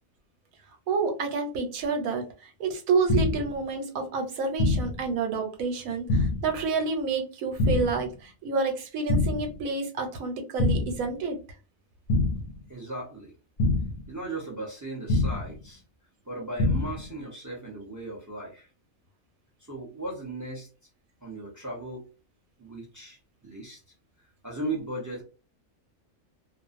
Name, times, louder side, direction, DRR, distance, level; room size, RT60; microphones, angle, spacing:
voice 1, 0.9-11.4, right 4 dB, 90° right, 4 dB, 1.1 m, -29 dB
sound 1, 3.1-3.6 4.6-5.1 6.1-6.6 7.6-8.1 9.1-9.6 10.6-11.1 12.1-12.6 13.6-14.1 15.1-15.6 16.6-17.1, left 2 dB, 65° left, 0.6 m, -25 dB
voice 2, 12.7-13.3 14.1-15.8 16.2-18.7 19.6-20.7 21.2-22.1 22.6-23.8 24.2-25.2, right 2 dB, 25° right, -2 dB, 0.3 m, -37 dB
2.5 x 2.0 x 2.4 m, 0.33 s
omnidirectional pair, 1.4 m